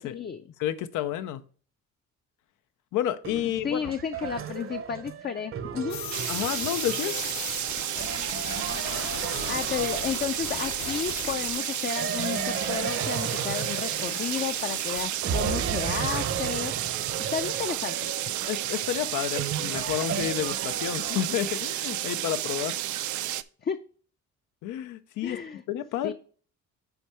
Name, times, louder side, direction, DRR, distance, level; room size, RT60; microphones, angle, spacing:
voice 1, 0.0-0.4 3.6-6.0 9.5-16.7 17.3-18.1 23.6-23.8 25.2-25.6 26.0-26.1, left 7 dB, 35° left, 0.5 m, -32 dB
voice 2, 0.6-1.4 2.9-3.9 6.3-7.2 18.5-22.8 24.6-25.4 25.7-26.1, left 12 dB, 90° left, 0.6 m, -30 dB
sound 1, 3.2-10.6 12.0-14.8 15.2-21.7, right 7 dB, 45° right, 0.8 m, -35 dB
sound 2, 5.9-15.0, left 8 dB, 65° left, 0.9 m, -38 dB
sound 3, 6.1-23.4, right 13 dB, 75° right, 0.5 m, -32 dB
7.1 x 4.5 x 4.7 m
cardioid pair, 90°, 30 cm